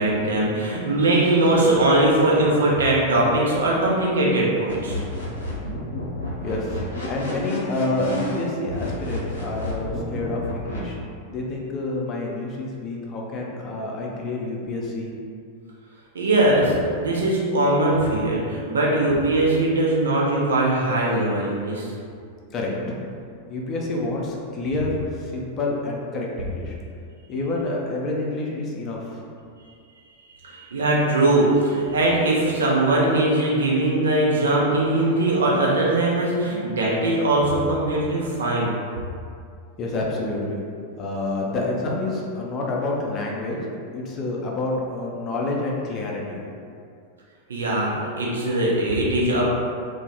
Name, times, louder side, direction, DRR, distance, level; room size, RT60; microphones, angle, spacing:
voice 1, 0.0-5.0 16.1-21.9 30.4-38.7 47.5-49.4, right 1 dB, 70° right, -4 dB, 0.5 m, -21 dB
sound 1, 4.7-10.8, left 1 dB, 75° left, 0.6 m, -31 dB
voice 2, 6.4-11.0 11.3-15.2 22.5-23.0 23.5-26.7 27.3-29.2 39.8-40.6 41.0-43.6 43.9-46.5, left 2 dB, 30° left, -2 dB, 0.4 m, -28 dB
2.2 x 2.0 x 2.9 m, 2.3 s
figure-of-eight pair, 90°, 0 cm